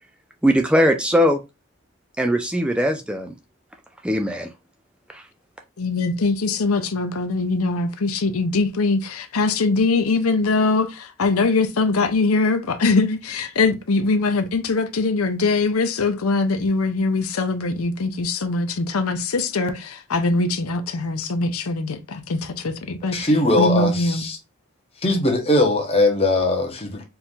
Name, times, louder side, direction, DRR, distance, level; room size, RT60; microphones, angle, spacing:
voice 1, 0.4-1.4 2.2-3.3 4.0-4.5 5.1-5.2, equal, 5° right, 0.3 m, -20 dB
voice 2, 5.8-23.3 23.6-24.2, left 3 dB, 90° left, 0.7 m, -22 dB
voice 3, 23.1-24.4 25.0-27.0, left 2 dB, 30° left, 1.1 m, -20 dB
4.5 x 2.6 x 3.7 m
head